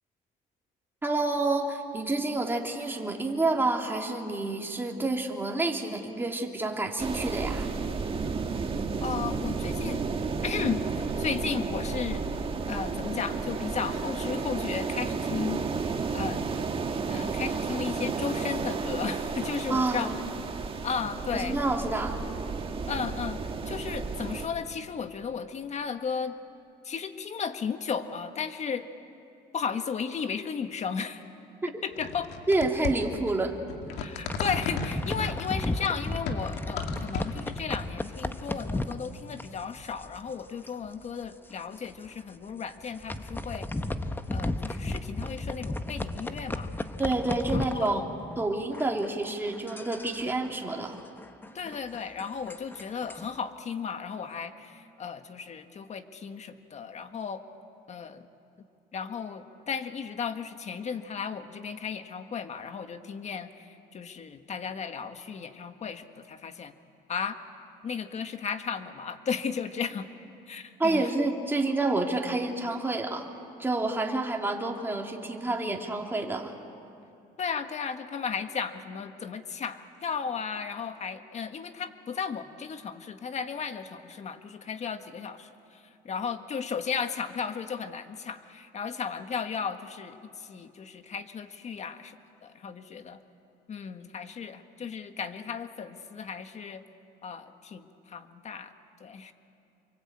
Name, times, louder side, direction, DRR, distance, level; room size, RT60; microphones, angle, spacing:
voice 1, 1.0-7.7 19.7-20.1 21.3-22.2 32.5-33.6 47.0-48.0 48.4-51.0 70.8-73.2 73.6-76.5, right 2 dB, 15° right, 1 dB, 2.8 m, -28 dB
sound 1, 7.0-24.5, right 4 dB, 30° right, 1.9 m, -32 dB
voice 2, 9.0-10.0 10.4-10.8 11.2-12.2 12.7-15.6 16.1-16.4 17.1-20.1 20.8-21.6 22.9-26.4 26.8-28.9 29.5-31.2 31.8-32.3 34.0-43.7 44.3-46.7 47.5-48.1 51.5-57.4 57.9-58.2 58.9-66.7 67.1-67.4 67.8-70.1 70.5-71.1 77.4-92.1 92.4-93.2 93.7-96.8 97.2-98.7 99.0-99.3, left 6 dB, 40° left, 8 dB, 1.7 m, -35 dB
sound 2, 31.9-37.6, left 5 dB, 85° left, 2.2 m, -35 dB
sound 3, 34.1-40.4 40.7-40.9 41.2-41.3 41.9-42.1 42.7-48.5 48.7-53.4, left 2 dB, 10° left, 1.1 m, -35 dB
27.5 x 23.5 x 8.7 m, 2.7 s
cardioid pair, 110°, 17 cm